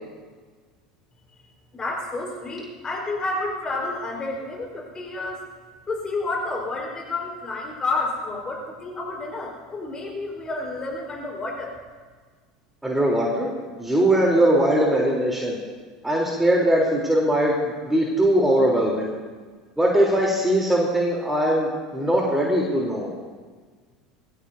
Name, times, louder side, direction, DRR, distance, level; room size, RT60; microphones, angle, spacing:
voice 1, 1.7-5.4 5.9-11.7, left 2 dB, 25° left, -1 dB, 4.6 m, -30 dB
voice 2, 12.8-13.5 13.8-15.6 16.0-17.5 17.8-19.1 19.8-23.1, right 1 dB, 5° right, -3 dB, 3.6 m, -20 dB
22.5 x 15.5 x 2.8 m, 1.5 s
hypercardioid pair, 75°, 3 cm